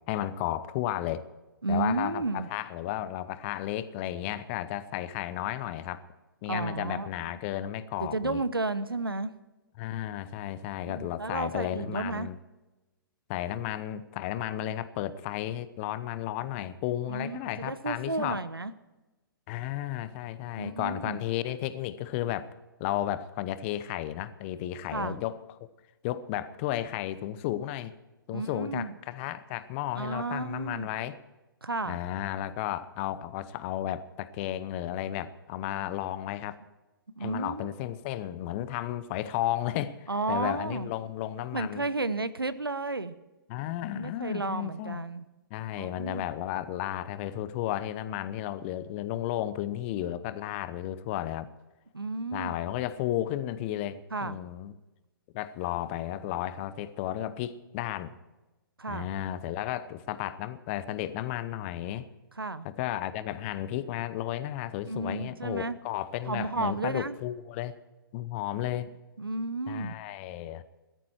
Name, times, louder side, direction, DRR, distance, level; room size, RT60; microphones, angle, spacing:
voice 1, 0.1-1.2 1.7-6.0 6.4-8.4 9.8-12.4 13.3-18.4 19.5-22.5 22.8-25.4 26.0-27.9 28.3-31.2 31.9-36.6 37.2-41.8 43.5-45.0 45.5-51.5 52.3-54.7 55.3-58.1 58.9-62.1 62.6-67.8 68.1-68.9 69.7-70.6, left 13 dB, 30° left, 15 dB, 0.9 m, -33 dB
voice 2, 1.6-2.5 6.5-7.1 8.0-9.3 10.9-12.3 17.1-18.7 20.6-21.2 24.9-25.2 28.3-28.9 30.0-30.9 31.6-32.0 37.2-37.7 40.1-40.9 41.5-43.2 43.9-45.2 45.8-46.3 51.9-52.6 54.1-54.4 58.8-59.1 62.4-62.7 64.9-65.8 66.3-67.2 68.6-68.7 69.2-70.0, right 3 dB, 85° right, 15 dB, 0.9 m, -32 dB
16.5 x 13.5 x 4.5 m, 1.1 s
figure-of-eight pair, 125°, 12 cm